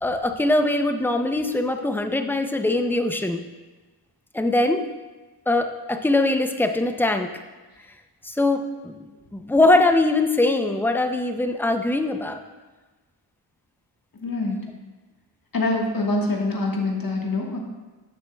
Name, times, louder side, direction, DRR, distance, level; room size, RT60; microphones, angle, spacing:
voice 1, 0.0-3.4 4.3-4.8 5.5-7.3 8.2-9.0 9.3-12.4, left 2 dB, 5° left, 6 dB, 0.5 m, -22 dB
voice 2, 14.1-14.7 15.5-17.6, left 2 dB, 55° left, -1 dB, 1.4 m, -25 dB
10.5 x 7.2 x 2.2 m, 1.2 s
wide cardioid pair, 80°, 41 cm